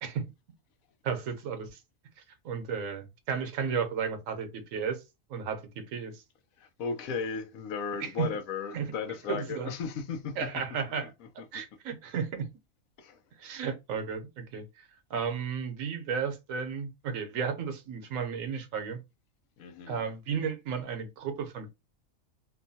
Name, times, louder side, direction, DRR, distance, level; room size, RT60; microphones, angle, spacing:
voice 1, 1.0-1.8 2.4-5.0 5.3-6.2 8.0-8.3 8.7-8.9 9.3-9.7 10.4-11.1 11.5-12.5 13.4-14.6 15.1-19.0 19.9-21.7, right 6 dB, 75° right, 1.0 m, -33 dB
voice 2, 6.6-10.5 11.4-11.6 13.0-13.2 19.6-20.0, left 5 dB, 90° left, 1.0 m, -35 dB
2.9 x 2.2 x 2.6 m
omnidirectional pair, 1.4 m